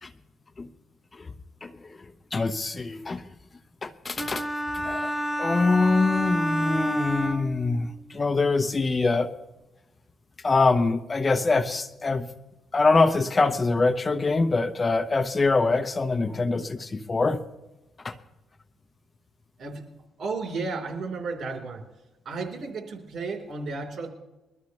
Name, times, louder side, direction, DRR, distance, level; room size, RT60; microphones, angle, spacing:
voice 1, 1.6-3.3 3.8-4.4 4.8-5.1 5.4-9.3 10.4-12.3 12.7-17.4 18.0-18.2, left 3 dB, 30° left, 11 dB, 0.8 m, -24 dB
sound 1, 4.2-8.1, equal, 5° right, 1.0 m, -29 dB
voice 2, 20.2-21.8 22.3-24.1, right 4 dB, 60° right, 2 dB, 3.8 m, -33 dB
22.0 x 13.0 x 3.2 m, 1.0 s
cardioid pair, 90°, 0 cm